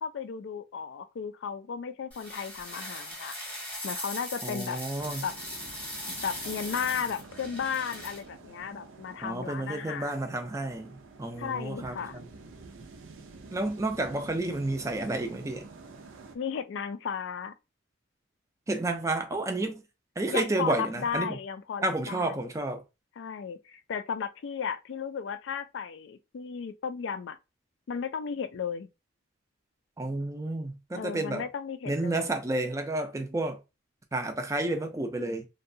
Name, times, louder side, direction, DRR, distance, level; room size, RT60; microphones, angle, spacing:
voice 1, 0.0-3.4 3.8-4.8 5.2-5.3 6.1-10.2 11.4-12.2 16.3-17.5 20.3-22.5 23.2-27.4 27.9-28.9 30.9-32.3, left 6 dB, 65° left, 0.3 m, -35 dB
sound 1, 2.1-8.2, left 1 dB, 10° left, 0.9 m, -39 dB
voice 2, 4.4-5.2 9.2-12.2 13.5-15.7 18.7-19.9 20.2-21.4 21.8-22.8 30.0-31.5 31.9-33.6 34.1-35.5, right 2 dB, 15° right, 0.3 m, -31 dB
sound 2, 5.0-16.4, right 3 dB, 80° right, 0.5 m, -49 dB
2.7 x 2.2 x 2.6 m
head